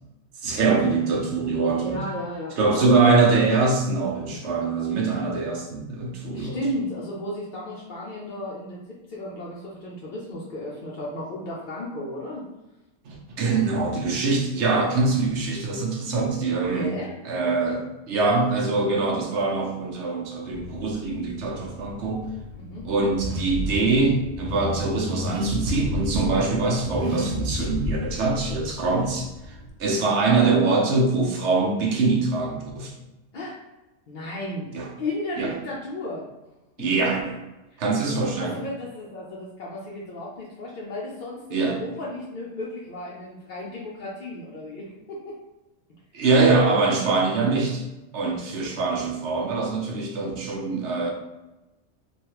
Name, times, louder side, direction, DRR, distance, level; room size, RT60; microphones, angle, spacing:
voice 1, 0.4-2.0 2.6-6.5 13.0-16.9 17.2-22.2 22.8-29.5 29.8-32.9 34.7-34.9 35.4-35.5 36.8-37.4 37.8-38.6 41.5-41.9 46.1-47.8 48.1-51.1, right 3 dB, 70° right, -1 dB, 0.9 m, -23 dB
voice 2, 1.7-3.0 6.3-12.4 16.6-17.1 22.6-22.8 33.3-33.6 34.1-34.7 35.0-36.3 37.7-37.8 38.4-45.4, left 1 dB, 55° left, -5 dB, 0.6 m, -34 dB
Car / Accelerating revving vroom, 20.5-29.7, left 1 dB, 90° right, 1.1 m, -33 dB
3.4 x 2.3 x 3.0 m, 1.0 s
omnidirectional pair, 1.3 m